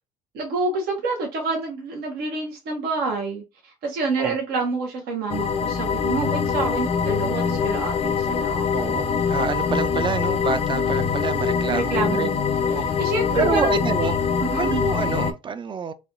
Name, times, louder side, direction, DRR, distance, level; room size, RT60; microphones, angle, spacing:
voice 1, 0.3-8.8 11.7-12.4 12.8-14.1 14.4-14.9, right 3 dB, 70° right, 0.9 m, -28 dB
sound 1, 5.3-15.3, left 6 dB, 40° left, 0.5 m, -23 dB
voice 2, 8.7-12.3 12.7-12.9 13.3-14.1 14.6-15.9, right 5 dB, 30° right, 0.4 m, -27 dB
3.3 x 2.3 x 2.5 m
supercardioid pair, 70°, 16 cm